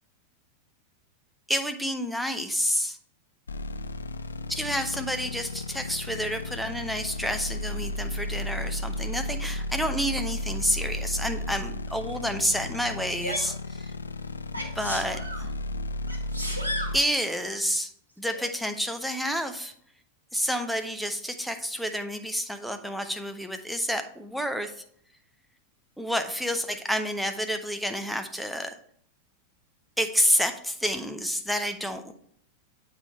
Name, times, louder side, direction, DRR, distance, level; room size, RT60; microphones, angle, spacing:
voice 1, 1.5-3.0 4.5-13.9 14.7-15.5 16.9-17.9 18.2-19.7 20.3-24.8 26.0-28.7 30.0-32.1, equal, ahead, 7 dB, 0.6 m, -29 dB
sound 1, 3.5-17.0, left 1 dB, 75° left, 0.3 m, -34 dB
Sneeze, 13.2-13.5 14.5-15.4 16.1-17.0 18.3-18.4, equal, 85° right, 1.0 m, -33 dB
8.1 x 3.3 x 4.2 m, 0.65 s
figure-of-eight pair, 90°, 0 cm